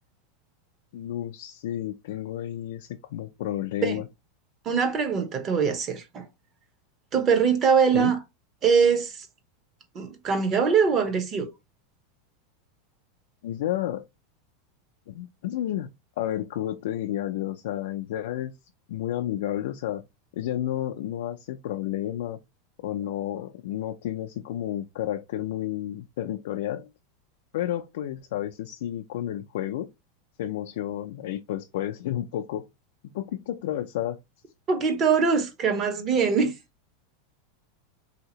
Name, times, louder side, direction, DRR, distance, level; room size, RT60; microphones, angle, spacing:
voice 1, 0.9-4.1 7.9-8.1 13.4-14.0 15.1-15.9 16.2-18.5 18.9-20.0 20.3-22.4 22.8-26.9 27.5-29.9 30.4-32.6 33.1-34.2 36.4-36.5, left 12 dB, 70° left, 0.4 m, -31 dB
voice 2, 4.7-6.2 7.1-8.2 8.6-9.3 9.9-11.5 34.7-36.5, right 6 dB, 25° right, 0.8 m, -22 dB
3.4 x 2.8 x 2.8 m
supercardioid pair, 160°, 0 cm